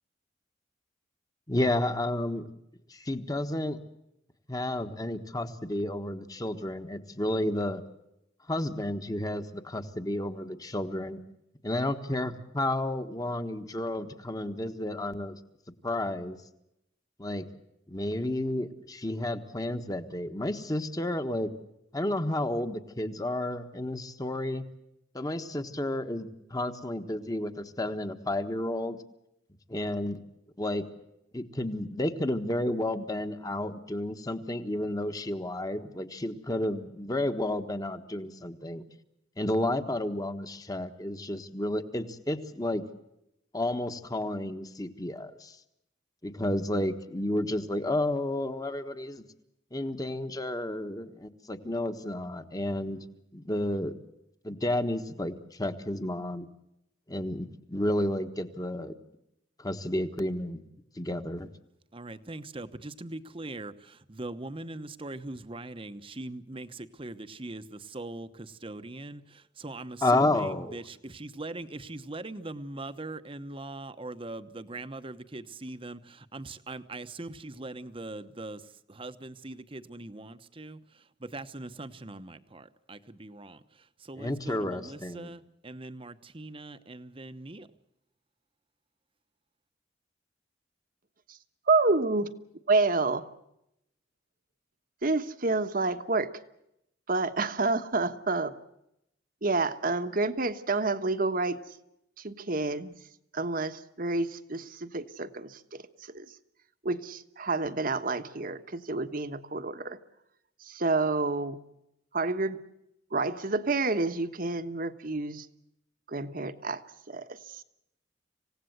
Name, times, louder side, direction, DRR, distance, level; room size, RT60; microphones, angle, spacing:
voice 1, 1.5-2.5 2.9-3.8 4.5-7.8 8.5-11.2 11.6-15.3 15.8-16.4 17.2-17.4 17.9-21.5 21.9-24.7 25.1-29.0 29.7-30.2 30.6-30.8 31.3-38.8 39.4-42.8 43.5-45.6 46.2-49.2 49.7-53.0 53.3-53.9 54.4-56.5 57.1-58.9 59.6-60.6 61.0-61.5 70.0-70.8 84.2-85.3, left 1 dB, 20° left, 9 dB, 1.4 m, -31 dB
voice 2, 61.9-87.7, right 2 dB, 30° right, 11 dB, 1.0 m, -41 dB
voice 3, 91.7-92.3 92.7-93.2 95.0-96.3 97.1-98.5 99.4-101.6 102.2-102.9 103.3-105.6 106.1-106.2 106.8-110.0 110.7-111.6 112.1-112.6 113.1-115.5 116.1-116.8 117.1-117.2, right 3 dB, 50° right, 10 dB, 1.2 m, -28 dB
27.0 x 17.0 x 8.0 m, 0.83 s
head